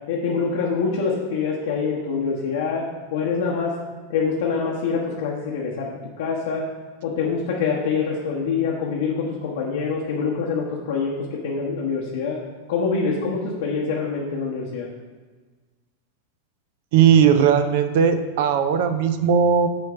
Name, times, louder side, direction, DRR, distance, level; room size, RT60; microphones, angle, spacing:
voice 1, 0.1-3.7 4.1-5.9 6.2-6.7 7.0-12.4 12.7-14.9, left 5 dB, 55° left, -3 dB, 0.9 m, -25 dB
voice 2, 16.9-19.7, right 7 dB, 50° right, 9 dB, 0.5 m, -17 dB
8.4 x 3.2 x 6.0 m, 1.4 s
figure-of-eight pair, 90°, 0 cm